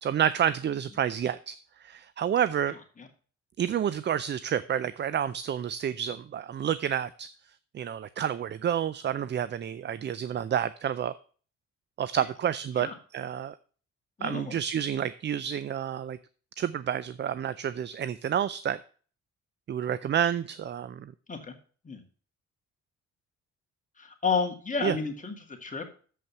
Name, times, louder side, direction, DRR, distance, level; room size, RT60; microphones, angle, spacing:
voice 1, 0.0-2.7 3.6-7.3 7.7-11.1 12.0-13.6 14.2-16.2 16.6-18.8 19.7-21.1 24.8-24.9, right 9 dB, 35° right, 16 dB, 0.4 m, -29 dB
voice 2, 14.2-14.6 21.3-21.5 21.8-22.0 24.0-25.8, left 5 dB, 25° left, 3 dB, 2.1 m, -31 dB
7.5 x 5.4 x 6.8 m, 0.41 s
cardioid pair, 90°, 30 cm